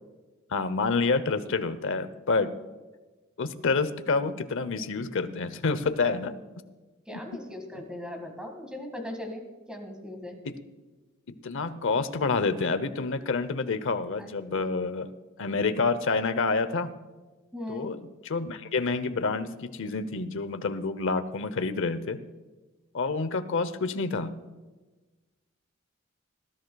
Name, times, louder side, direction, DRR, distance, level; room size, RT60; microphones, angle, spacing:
voice 1, 0.5-2.5 3.4-6.3 7.1-7.2 10.5-10.6 11.4-15.1 15.4-16.9 17.7-22.2 22.9-24.4, left 4 dB, 65° left, 12 dB, 0.8 m, -28 dB
voice 2, 7.1-9.4 9.7-10.4 14.2-14.7 17.5-17.9, left 1 dB, 5° right, 3 dB, 1.9 m, -39 dB
19.5 x 13.5 x 2.3 m, 1.2 s
head